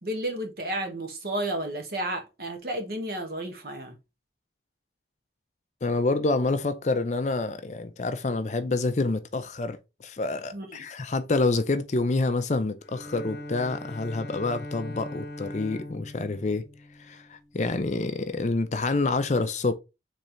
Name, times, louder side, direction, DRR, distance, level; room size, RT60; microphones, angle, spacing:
voice 1, 0.0-4.0 10.5-10.8, right 1 dB, 55° right, 1.2 m, -32 dB
voice 2, 5.8-16.6 17.0-19.7, left 3 dB, 40° left, 0.5 m, -27 dB
Bowed string instrument, 12.8-17.8, left 1 dB, 60° left, 0.9 m, -41 dB
4.4 x 3.2 x 3.8 m
head